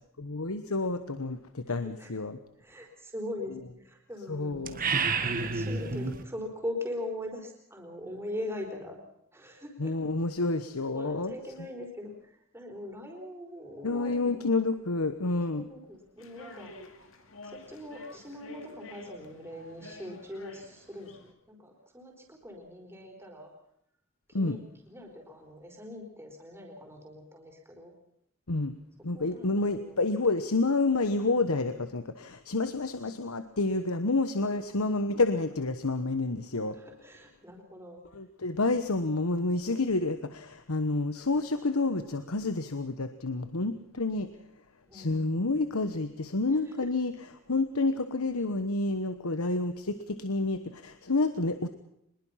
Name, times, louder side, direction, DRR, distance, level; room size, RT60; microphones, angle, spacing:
voice 1, 0.2-2.4 4.3-4.9 9.8-11.3 13.8-15.7 24.3-24.6 28.5-28.8 29.0-36.8 38.1-44.3 44.9-47.1 47.5-51.7, left 3 dB, 85° left, 10 dB, 1.1 m, -29 dB
voice 2, 1.8-2.1 2.6-4.8 5.2-9.0 9.3-9.9 10.9-14.5 15.5-16.7 17.4-23.5 24.3-24.6 24.9-27.9 29.1-30.0 32.8-33.2 36.7-38.0 44.9-45.4 46.6-46.7, left 1 dB, 10° right, 1 dB, 4.3 m, -41 dB
sound 1, 4.6-6.2, right 4 dB, 40° right, 1.6 m, -29 dB
sound 2, 16.2-21.3, left 3 dB, 65° left, 2.6 m, -50 dB
23.5 x 21.5 x 5.8 m, 0.77 s
head